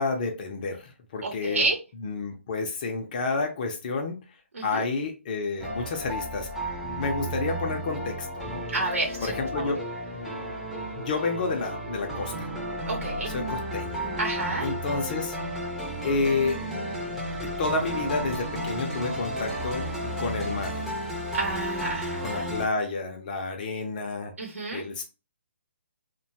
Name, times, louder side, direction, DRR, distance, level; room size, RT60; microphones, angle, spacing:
voice 1, 0.0-1.6 2.0-4.2 4.6-6.5 6.8-8.6 9.2-9.8 10.1-10.3 10.9-12.5 13.3-14.0 14.6-15.3 16.0-16.6 17.4-19.9 20.2-20.8 22.2-24.3 24.7-25.0, left 3 dB, 40° left, 3 dB, 0.5 m, -30 dB
voice 2, 1.2-1.8 4.5-4.8 8.7-9.7 12.8-13.3 14.2-14.7 21.3-22.5 24.4-24.8, right 3 dB, 80° right, 0 dB, 0.9 m, -30 dB
sound 1, 5.6-22.7, equal, 5° right, 0.5 m, -33 dB
2.7 x 2.2 x 2.7 m, 0.30 s
hypercardioid pair, 150°, 7 cm